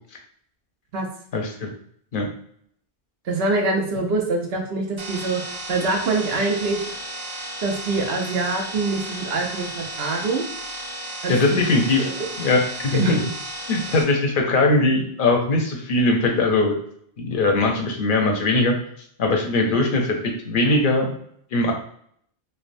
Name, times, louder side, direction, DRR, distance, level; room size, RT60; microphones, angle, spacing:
voice 1, 1.3-1.7 2.1-2.3 11.3-12.1 12.4-13.2 13.7-16.8 17.2-18.8 19.2-21.2 21.5-21.7, left 2 dB, 60° left, 2 dB, 0.7 m, -20 dB
voice 2, 3.2-5.4 5.7-6.8 7.6-10.4 11.2-11.6 12.0-12.3 12.9-13.1, right 3 dB, 75° right, 2 dB, 0.9 m, -24 dB
sound 1, 5.0-14.0, right 1 dB, 45° right, 0.4 m, -34 dB
3.2 x 2.2 x 2.5 m, 0.65 s
omnidirectional pair, 1.1 m